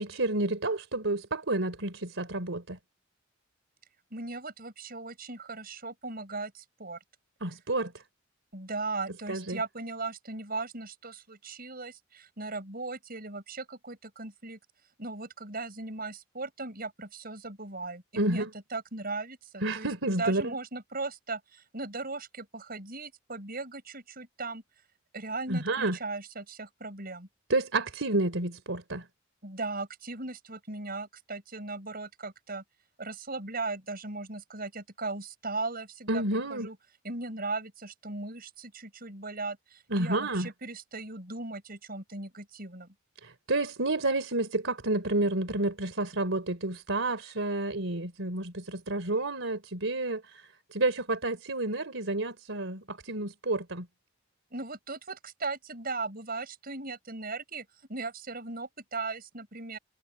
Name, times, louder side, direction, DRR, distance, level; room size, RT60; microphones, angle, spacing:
voice 1, 0.0-2.8 7.4-7.9 9.3-9.6 18.1-18.5 19.6-20.5 25.5-26.0 27.5-29.1 36.1-36.7 39.9-40.5 43.2-53.9, right 2 dB, 75° right, 3.3 m, -30 dB
voice 2, 4.1-7.0 8.5-14.6 15.0-18.5 18.7-19.9 20.2-24.6 25.1-27.3 29.4-32.6 33.0-36.8 37.0-42.9 54.5-59.8, right 3 dB, 50° right, 7.3 m, -38 dB
head